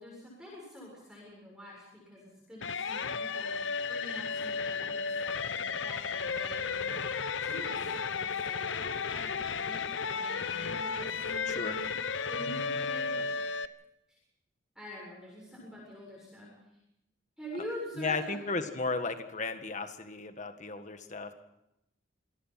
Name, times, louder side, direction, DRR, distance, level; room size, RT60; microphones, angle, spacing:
voice 1, 0.0-3.6 3.9-12.0 12.3-13.3 14.1-14.2 14.8-16.5 17.4-18.4, equal, 5° right, -4 dB, 7.3 m, -46 dB
sound 1, 2.6-13.7, left 5 dB, 70° left, 0.9 m, -34 dB
voice 2, 18.0-21.3, left 3 dB, 40° left, 8 dB, 1.8 m, -34 dB
26.5 x 19.0 x 6.0 m, 0.84 s
head